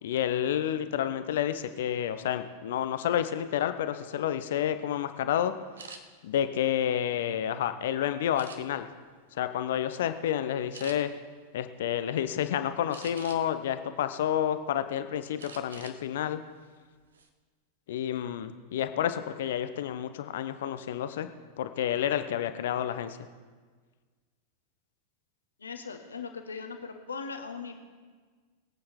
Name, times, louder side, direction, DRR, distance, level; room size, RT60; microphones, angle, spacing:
voice 1, 0.0-5.5 6.2-8.9 9.3-11.1 11.5-16.4 17.9-21.3 21.6-23.2, left 10 dB, 55° left, 10 dB, 0.9 m, -30 dB
sound 1, 5.8-6.0 6.6-7.6 8.3-8.9 9.5-9.7 10.0-10.2 10.7-11.0 12.9-13.6 14.1-14.8 15.4-16.0 16.3-16.5 16.9-17.3, right 5 dB, 65° right, 1.1 m, -47 dB
voice 2, 25.6-27.8, left 5 dB, 75° left, 5 dB, 1.4 m, -39 dB
22.0 x 8.7 x 4.5 m, 1.5 s
figure-of-eight pair, 90°, 0 cm